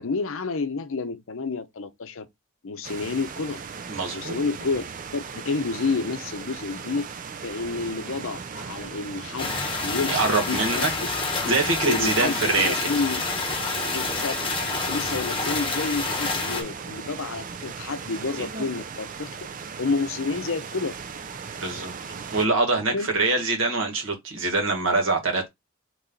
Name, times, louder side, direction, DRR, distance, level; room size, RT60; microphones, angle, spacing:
voice 1, 0.0-2.3 2.6-3.6 4.1-4.8 5.1-7.1 7.4-11.1 11.8-13.2 13.9-19.3 19.8-21.0 22.5-22.6 22.9-23.1, left 4 dB, 65° left, 0.6 m, -30 dB
sound 1, 2.8-22.5, right 6 dB, 40° right, 0.4 m, -38 dB
voice 2, 3.9-4.4 10.1-10.9 11.4-12.8 18.4-18.6 21.6-21.9 22.3-25.5, right 3 dB, 65° right, 1.7 m, -24 dB
sound 2, 9.4-16.6, left 3 dB, 25° left, 1.2 m, -28 dB
4.3 x 3.0 x 3.8 m
head